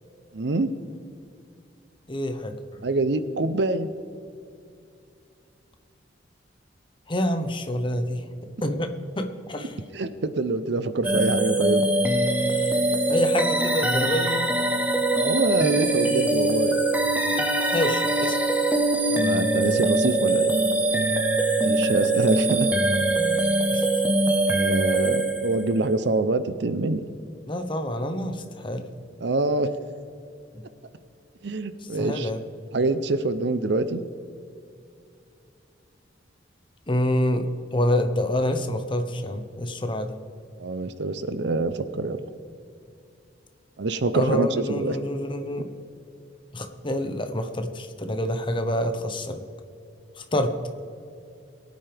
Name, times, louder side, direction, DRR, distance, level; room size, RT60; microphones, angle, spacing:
voice 1, 0.3-0.7 2.8-3.9 9.9-11.8 15.1-16.8 19.1-20.5 21.6-22.7 24.5-27.0 29.2-29.7 31.4-32.3 32.7-34.0 40.6-42.2 43.8-45.0, right 2 dB, 65° right, 12 dB, 0.6 m, -25 dB
voice 2, 2.1-2.5 7.1-8.2 8.6-8.9 9.2-9.7 13.1-14.5 17.3-17.4 17.7-18.4 23.7-23.8 27.5-28.8 32.0-32.4 36.9-40.1 44.1-45.6 46.5-49.4 50.3-50.5, left 1 dB, 25° left, 7 dB, 1.0 m, -27 dB
sound 1, 11.0-25.8, right 2 dB, 10° right, 1.0 m, -23 dB
21.5 x 9.3 x 3.5 m, 2.4 s
head